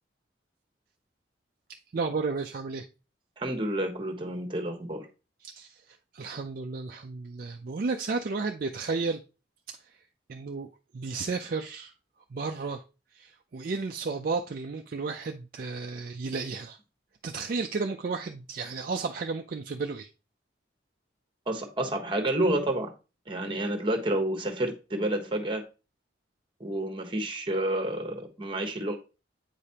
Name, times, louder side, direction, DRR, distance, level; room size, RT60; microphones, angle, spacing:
voice 1, 1.9-2.9 5.4-9.2 10.3-10.7 10.9-11.9 12.3-12.8 13.1-16.8 17.2-20.1, right 4 dB, 50° right, 0.4 m, -33 dB
voice 2, 3.4-5.1 21.5-22.9 23.3-25.6 26.6-29.0, right 1 dB, 25° right, 1.1 m, -29 dB
8.2 x 5.0 x 2.8 m
head